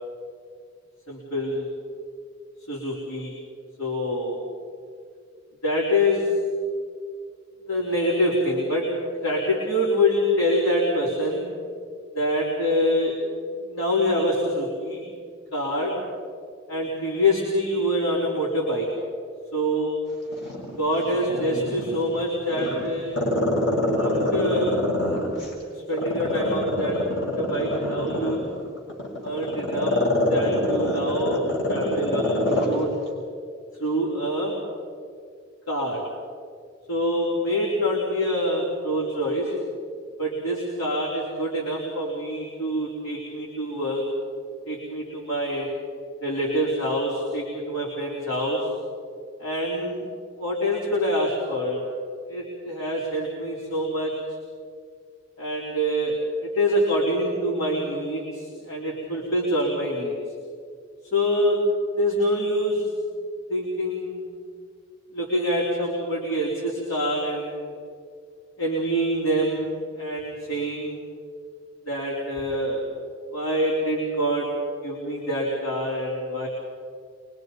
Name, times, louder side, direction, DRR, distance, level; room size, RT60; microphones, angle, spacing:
voice 1, 1.1-1.7 2.7-3.3 3.8-4.4 5.6-6.4 7.7-8.9 9.2-11.5 12.1-13.2 13.6-15.0 15.5-16.0 16.7-18.9 19.5-19.9 20.8-23.2 23.9-24.7 25.7-28.4 29.2-29.9 30.3-32.9 33.8-34.6 35.7-36.0 36.9-39.5 40.2-44.1 44.7-45.7 46.2-48.7 49.4-50.1 50.4-51.9 52.3-54.1 55.4-60.1 61.1-61.6 62.0-62.9 63.5-64.3 65.1-67.7 68.6-71.0 71.9-72.9 73.3-74.5 74.8-76.5, equal, 90° left, -4 dB, 4.3 m, -25 dB
Growling, 20.3-22.1 22.5-25.5 25.9-32.7 33.1-33.2, left 2 dB, 55° left, 6.1 m, -25 dB
25.0 x 23.5 x 5.5 m, 2.2 s
head